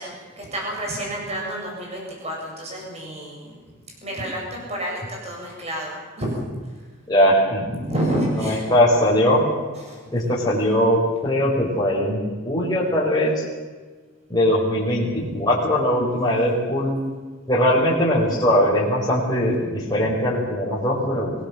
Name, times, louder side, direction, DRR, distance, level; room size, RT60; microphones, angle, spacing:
voice 1, 0.0-3.6 4.0-6.5 7.7-8.7 9.7-10.0 15.1-15.5, right 1 dB, 30° right, -1 dB, 7.6 m, -29 dB
voice 2, 7.1-7.6 8.4-9.5 10.1-13.4 14.3-17.0 17.5-21.3, equal, 20° left, -7 dB, 5.3 m, -20 dB
24.0 x 18.0 x 7.6 m, 1.4 s
head